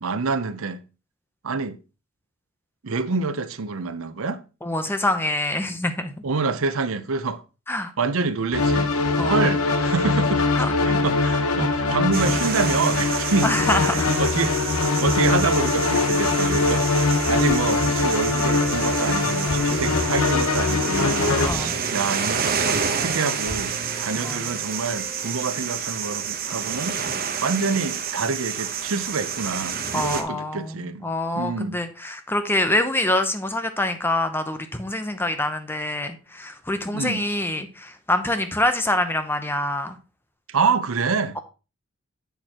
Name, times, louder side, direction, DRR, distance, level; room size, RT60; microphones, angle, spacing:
voice 1, 0.0-0.8 1.4-1.8 2.8-4.4 6.2-7.4 8.0-8.9 9.2-13.5 13.8-16.9 17.3-27.0 27.4-31.1 31.3-31.8 36.9-37.2 40.5-41.4, right 4 dB, 75° right, 0.7 m, -27 dB
voice 2, 4.6-6.1 7.7-7.9 9.2-9.4 10.6-10.7 13.4-14.1 21.4-21.7 24.1-24.4 29.9-40.0, left 1 dB, 10° left, 0.7 m, -25 dB
sound 1, 8.5-21.5, left 3 dB, 85° left, 1.0 m, -22 dB
sound 2, 12.1-30.2, right 7 dB, 40° right, 0.8 m, -29 dB
sound 3, 17.4-25.4, right 2 dB, 10° right, 1.8 m, -39 dB
8.1 x 6.6 x 2.9 m
head